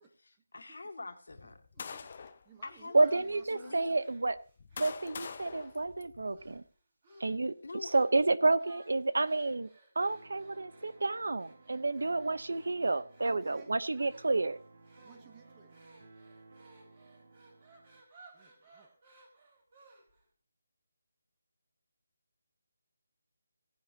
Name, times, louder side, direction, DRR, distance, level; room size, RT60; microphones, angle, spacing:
voice 1, 0.0-1.7 2.6-3.2 3.5-4.0 7.6-8.0, left 3 dB, 80° left, 5 dB, 2.1 m, -45 dB
sound 1, 1.3-2.5 3.2-3.3 4.2-6.6, left 5 dB, 30° left, 0.8 m, -45 dB
voice 2, 1.7-2.1 2.4-4.0 13.2-13.7 15.0-15.8 18.3-18.9, right 5 dB, 10° right, 6 dB, 1.0 m, -57 dB
voice 3, 2.9-4.4 4.8-6.6 7.2-7.5 7.8-9.7 10.0-14.6, right 3 dB, 75° right, 15 dB, 0.8 m, -30 dB
sound 2, 3.2-5.8 6.2-6.7 7.0-7.4 7.8-8.2 8.6-20.3, right 2 dB, 25° right, 4.8 m, -60 dB
sound 3, 10.0-18.0, right 3 dB, 45° right, 2.0 m, -58 dB
17.5 x 10.5 x 2.9 m, 0.39 s
figure-of-eight pair, 175°, 0 cm